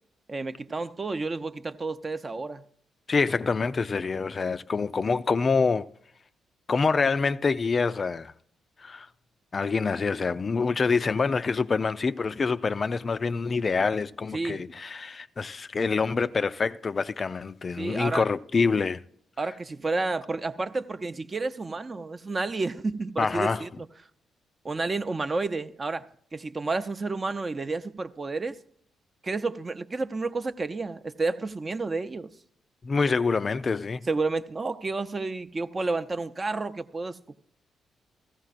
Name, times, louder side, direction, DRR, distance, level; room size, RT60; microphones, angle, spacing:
voice 1, 0.3-2.6 14.3-14.6 17.8-18.2 19.4-23.7 24.6-26.1 26.3-28.6 29.2-32.3 34.1-37.3, right 3 dB, 35° right, 0.6 m, -30 dB
voice 2, 3.1-5.9 6.7-8.3 8.8-9.1 9.5-19.0 23.2-23.6 32.8-34.1, left 4 dB, 40° left, 0.4 m, -26 dB
15.5 x 15.0 x 2.4 m
figure-of-eight pair, 40°, 0 cm